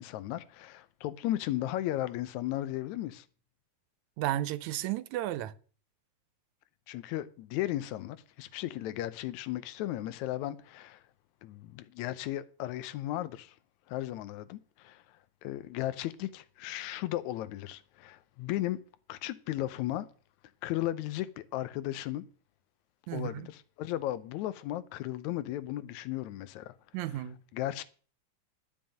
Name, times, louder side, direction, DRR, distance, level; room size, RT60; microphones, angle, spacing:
voice 1, 0.0-3.3 6.9-11.0 11.4-13.6 13.9-15.0 15.4-18.8 19.1-20.1 20.6-22.3 23.1-26.7 27.0-27.8, left 14 dB, 80° left, 2.0 m, -35 dB
voice 2, 4.2-5.5 23.1-23.5 26.9-27.4, right 13 dB, 85° right, 2.0 m, -33 dB
12.0 x 5.5 x 8.8 m
omnidirectional pair, 3.3 m